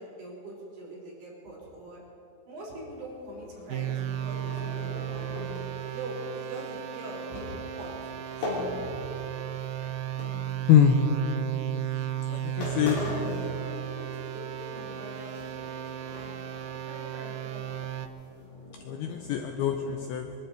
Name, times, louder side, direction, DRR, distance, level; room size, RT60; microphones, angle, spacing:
voice 1, 0.0-2.0 2.5-5.6 5.9-7.9 8.2-9.9 12.4-16.3 16.7-17.8, right 1 dB, 60° right, -5 dB, 6.2 m, -43 dB
sound 1, 3.2-9.3 9.6-11.1 11.7-11.9 12.3-12.4 12.6-14.3 14.6-15.8 16.1-16.7 17.0-17.1 17.5-19.9, left 2 dB, 60° left, 5.5 m, -40 dB
sound 2, 3.7-18.1, right 12 dB, 85° right, 2.1 m, -35 dB
voice 2, 12.3-13.0 18.9-20.3, left 9 dB, 85° left, 5 dB, 2.2 m, -23 dB
23.5 x 12.0 x 4.6 m, 2.8 s
omnidirectional pair, 5.2 m